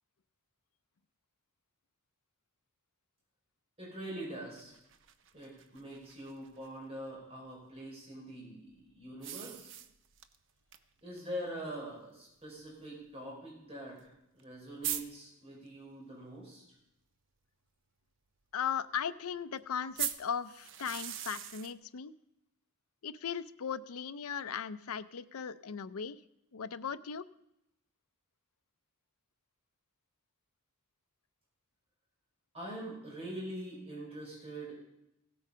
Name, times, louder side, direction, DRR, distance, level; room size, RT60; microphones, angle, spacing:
voice 1, 3.8-4.8 5.3-9.7 11.0-14.0 14.3-16.6 32.5-34.8, right 1 dB, 25° right, -3 dB, 4.8 m, -44 dB
sound 1, 4.6-6.7 9.2-10.4 10.7-10.8 11.2-11.3 12.2-12.3 14.1-14.2 14.4-14.5 14.8-15.0 20.0-21.7, right 10 dB, 55° right, 0.7 m, -39 dB
voice 2, 18.5-22.1 23.0-26.2 26.5-27.3, left 7 dB, 75° left, 11 dB, 0.5 m, -37 dB
16.0 x 8.6 x 5.6 m, 0.83 s
head